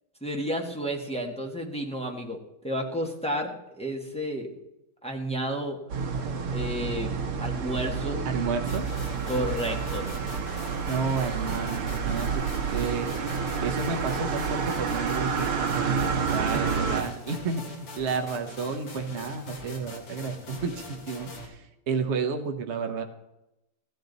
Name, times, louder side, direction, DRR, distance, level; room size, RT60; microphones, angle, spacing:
voice 1, 0.2-2.4 2.6-4.5 5.0-5.8 6.5-8.2 9.3-10.0 16.5-16.6, equal, 5° left, 0 dB, 1.0 m, -31 dB
sound 1, 5.9-17.0, right 5 dB, 85° right, 2.1 m, -29 dB
voice 2, 8.2-8.9 10.9-13.2 13.6-23.0, right 5 dB, 45° right, 5 dB, 0.9 m, -31 dB
sound 2, 8.7-21.5, left 2 dB, 85° left, 3.2 m, -43 dB
15.5 x 11.5 x 4.0 m, 0.91 s
omnidirectional pair, 2.3 m